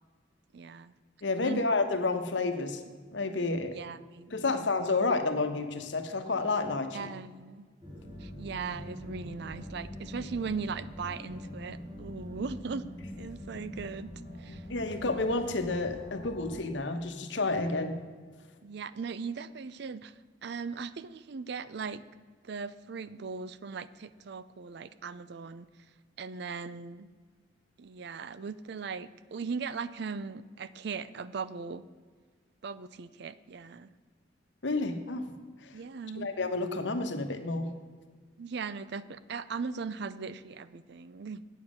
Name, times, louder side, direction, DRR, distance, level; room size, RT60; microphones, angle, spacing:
voice 1, 0.5-0.9 1.4-1.6 3.7-4.7 6.9-7.7 8.2-12.9 13.2-14.1 14.4-14.6 18.6-20.1 20.4-22.0 22.4-25.7 26.2-27.1 27.8-31.9 32.6-33.9 35.7-36.3 38.4-41.4, right 5 dB, 65° right, 15 dB, 0.5 m, -38 dB
voice 2, 1.2-2.8 3.1-3.7 4.3-7.1 14.7-18.0 34.6-35.3 36.2-37.7, left 3 dB, 75° left, 7 dB, 1.0 m, -30 dB
sound 1, 7.8-16.6, left 1 dB, 25° right, 2.9 m, -44 dB
8.9 x 7.3 x 6.3 m, 1.5 s
head